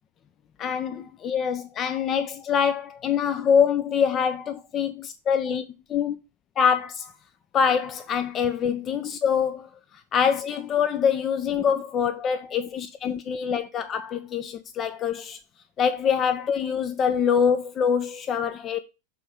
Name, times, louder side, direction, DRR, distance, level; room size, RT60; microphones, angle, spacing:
voice 1, 0.6-5.6 5.9-6.2 6.6-7.1 7.5-15.4 15.8-18.8, left 7 dB, 30° left, 0.4 m, -25 dB
6.8 x 3.2 x 4.9 m
figure-of-eight pair, 90°, 0 cm